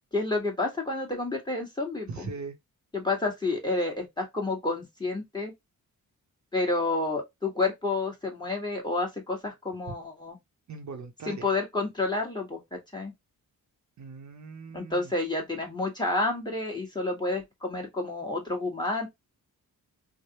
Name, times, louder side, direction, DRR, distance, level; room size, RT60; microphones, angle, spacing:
voice 1, 0.1-2.3 2.9-5.5 6.5-10.4 11.3-13.1 14.7-19.1, left 2 dB, 10° left, 1.2 m, -30 dB
voice 2, 2.1-2.6 9.9-10.0 10.7-11.5 14.0-15.1, right 4 dB, 55° right, 0.7 m, -40 dB
3.2 x 2.0 x 2.8 m
cardioid pair, 85°, 35 cm